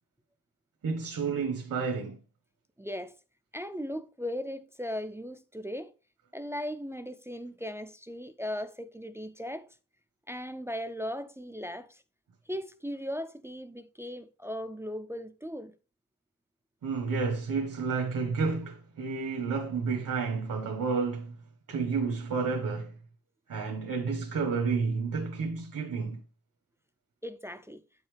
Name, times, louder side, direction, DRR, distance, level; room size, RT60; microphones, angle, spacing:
voice 1, 0.8-2.2 16.8-21.4 21.7-23.0 23.5-26.2, right 5 dB, 65° right, 1.2 m, -30 dB
voice 2, 2.8-3.2 3.5-5.9 6.3-9.7 10.3-12.0 12.5-15.7 27.2-27.8, equal, 10° right, 0.3 m, -37 dB
8.7 x 5.5 x 3.2 m
wide cardioid pair, 165°, 34 cm